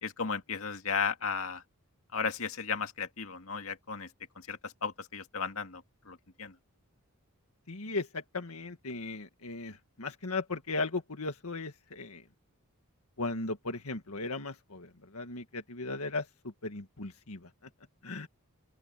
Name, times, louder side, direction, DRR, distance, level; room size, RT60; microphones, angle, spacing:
voice 1, 0.0-1.6 2.1-4.1 4.4-6.5, left 5 dB, 70° left, 2.1 m, -35 dB
voice 2, 7.7-12.2 13.2-17.5 18.0-18.3, left 3 dB, 85° left, 1.9 m, -37 dB
open air
head